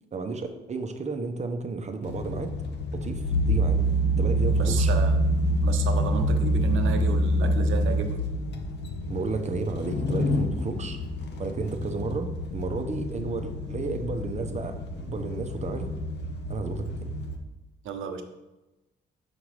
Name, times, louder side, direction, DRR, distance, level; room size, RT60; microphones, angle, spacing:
voice 1, 0.1-2.5 2.9-3.2 3.5-3.8 4.1-4.9 9.1-11.0 11.4-14.7 15.0-15.9 16.5-17.1, right 4 dB, 35° right, 7 dB, 0.9 m, -32 dB
sound 1, 2.0-17.4, equal, 60° left, 1.0 m, -27 dB
voice 2, 4.6-5.2 5.6-8.3 17.8-18.2, right 6 dB, 80° right, 6 dB, 0.9 m, -32 dB
5.8 x 5.2 x 4.9 m, 1.0 s
cardioid pair, 90°, 20 cm